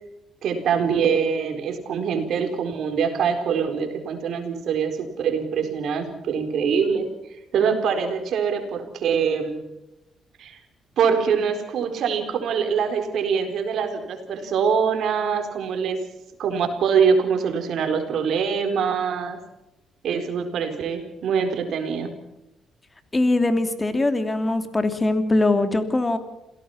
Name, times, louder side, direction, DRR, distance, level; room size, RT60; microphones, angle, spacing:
voice 1, 0.4-7.1 7.5-9.6 10.4-10.6 11.0-16.0 16.4-19.4 20.0-22.1, right 6 dB, 70° right, 6 dB, 4.4 m, -24 dB
voice 2, 23.1-26.2, left 2 dB, 20° left, 9 dB, 2.9 m, -21 dB
27.5 x 17.5 x 5.8 m, 0.93 s
cardioid pair, 90°, 0 cm